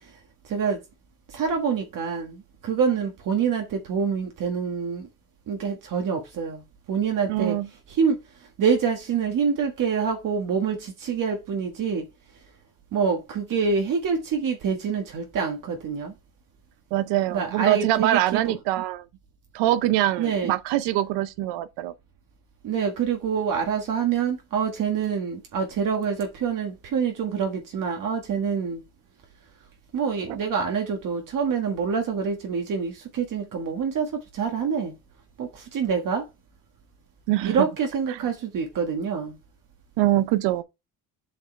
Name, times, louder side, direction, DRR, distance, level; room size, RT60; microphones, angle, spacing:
voice 1, 0.4-0.8 1.3-5.1 5.5-7.6 7.9-8.2 8.6-12.0 12.9-16.1 17.3-18.5 20.2-20.5 22.6-28.8 29.9-34.9 35.4-36.3 37.4-39.4, right 6 dB, 50° right, 1.6 m, -26 dB
voice 2, 7.3-7.7 16.9-19.1 19.5-21.9 30.3-30.4 37.3-37.6 38.1-38.2 40.0-40.6, right 14 dB, 90° right, 0.7 m, -23 dB
7.6 x 4.7 x 3.2 m
cardioid pair, 135°, 41 cm